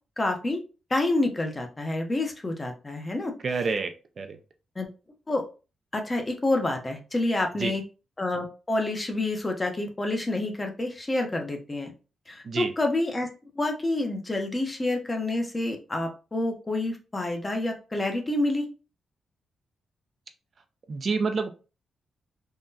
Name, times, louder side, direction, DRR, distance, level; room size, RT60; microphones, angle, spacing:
voice 1, 0.2-0.6 0.9-3.3 4.8-4.9 5.3-5.5 5.9-7.8 8.2-11.9 12.3-13.3 13.6-18.7, left 2 dB, 20° left, 4 dB, 0.6 m, -28 dB
voice 2, 3.4-4.4 7.6-7.7 12.4-12.7 20.9-21.5, right 4 dB, 45° right, 7 dB, 0.3 m, -28 dB
3.7 x 2.1 x 2.6 m, 0.33 s
wide cardioid pair, 125°, 0 cm